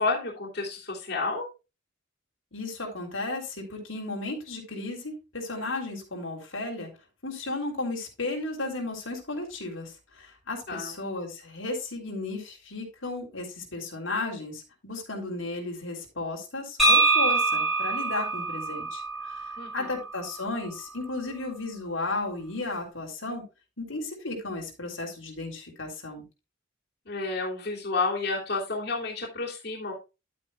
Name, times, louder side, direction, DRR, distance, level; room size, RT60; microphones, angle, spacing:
voice 1, 0.0-1.5 10.7-10.9 19.6-20.0 27.0-29.9, left 3 dB, 55° left, -2 dB, 3.2 m, -30 dB
voice 2, 2.5-6.9 7.2-23.4 23.8-26.3, left 2 dB, 85° left, 1 dB, 3.6 m, -34 dB
sound 1, 16.8-20.6, right 3 dB, ahead, 2.9 m, -25 dB
12.0 x 8.7 x 2.4 m, 0.28 s
head